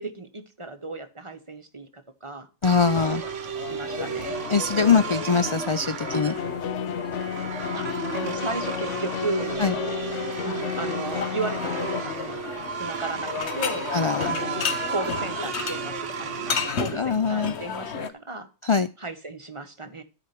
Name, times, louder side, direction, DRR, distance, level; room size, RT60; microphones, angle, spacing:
voice 1, 0.0-2.5 3.1-3.3 3.7-4.4 7.7-7.9 8.1-9.6 10.4-12.4 12.8-13.9 14.2-18.5 19.0-20.0, right 3 dB, 25° right, 8 dB, 1.1 m, -35 dB
voice 2, 2.6-3.2 4.5-6.3 9.6-9.7 13.9-14.3 16.9-17.5 18.6-18.9, left 5 dB, 45° left, 11 dB, 0.4 m, -22 dB
sound 1, 2.6-16.7, right 7 dB, 80° right, 1.2 m, -34 dB
sound 2, 2.9-18.1, left 5 dB, 65° left, 1.3 m, -33 dB
sound 3, 6.0-12.0, left 8 dB, 85° left, 1.0 m, -32 dB
13.0 x 5.1 x 5.8 m, 0.33 s
omnidirectional pair, 1.2 m